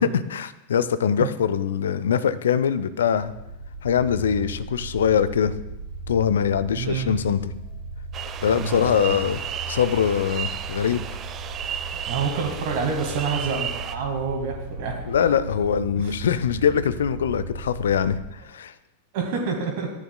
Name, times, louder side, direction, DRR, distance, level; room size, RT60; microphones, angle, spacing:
voice 1, 0.0-3.3 3.8-5.5 6.1-7.5 8.4-9.4 9.7-11.0 15.1-18.7, left 8 dB, 65° left, 14 dB, 0.5 m, -23 dB
sound 1, 3.0-18.3, right 2 dB, 85° left, 3.4 m, -37 dB
voice 2, 6.8-7.1 8.5-9.1 12.1-14.9 16.0-16.1 19.1-19.9, right 5 dB, 50° right, 1 dB, 1.7 m, -28 dB
sound 2, 8.1-14.0, right 9 dB, 30° right, 0.6 m, -34 dB
14.0 x 9.6 x 2.2 m, 0.95 s
figure-of-eight pair, 90°, 0 cm